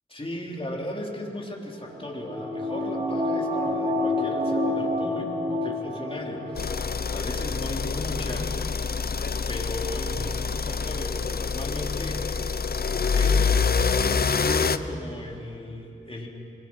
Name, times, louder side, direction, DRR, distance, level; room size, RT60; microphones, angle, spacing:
voice 1, 0.1-8.5 9.5-12.7 13.1-13.7 14.4-16.3, left 1 dB, 25° left, -1 dB, 3.9 m, -36 dB
sound 1, 1.9-6.6 7.0-7.1, left 1 dB, 35° right, 4.2 m, -28 dB
sound 2, 6.6-14.8, left 5 dB, 45° left, 0.7 m, -26 dB
25.0 x 22.5 x 5.7 m, 2.7 s
cardioid pair, 60°, 21 cm